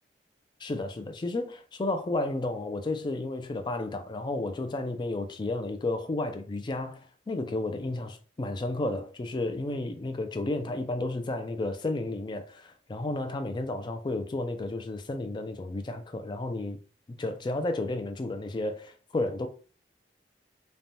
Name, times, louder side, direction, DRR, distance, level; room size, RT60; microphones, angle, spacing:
voice 1, 0.6-16.8 17.2-19.5, left 2 dB, 25° left, 0.4 m, -32 dB
3.2 x 2.1 x 2.7 m
head